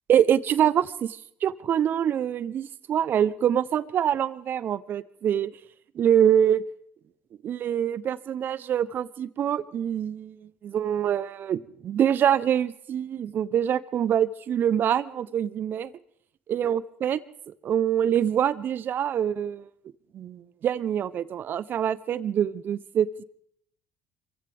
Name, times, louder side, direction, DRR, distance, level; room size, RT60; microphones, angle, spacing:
voice 1, 0.1-5.5 5.9-6.6 7.4-10.4 10.6-15.9 16.5-17.2 17.6-19.7 20.1-23.1, right 9 dB, 50° right, 17 dB, 0.8 m, -25 dB
25.5 x 15.5 x 3.5 m, 0.69 s
supercardioid pair, 75°, 4 cm